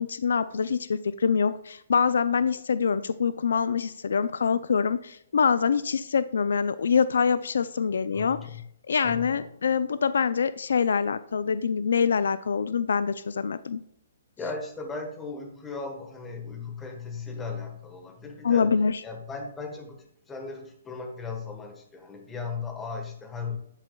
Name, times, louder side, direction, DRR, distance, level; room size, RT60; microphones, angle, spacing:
voice 1, 0.0-8.4 8.9-13.8 18.4-18.9, left 6 dB, 80° left, 15 dB, 0.3 m, -25 dB
voice 2, 8.1-8.6 9.0-9.5 14.4-18.7 19.0-23.6, left 4 dB, 10° left, 4 dB, 1.2 m, -37 dB
10.5 x 8.2 x 2.3 m, 0.74 s
hypercardioid pair, 155°, 0 cm